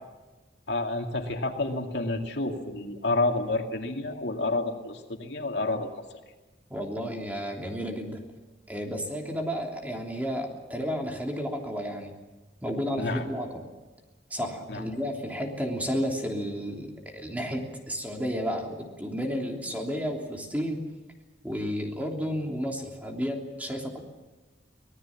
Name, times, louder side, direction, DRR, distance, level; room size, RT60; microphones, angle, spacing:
voice 1, 0.7-5.9 13.0-13.2 14.7-14.8, left 2 dB, 80° left, 3 dB, 2.4 m, -29 dB
voice 2, 6.7-8.2 8.7-12.2 12.6-13.7 14.3-20.8 21.4-24.0, equal, 10° right, 1 dB, 3.2 m, -32 dB
25.0 x 18.5 x 7.4 m, 1.2 s
head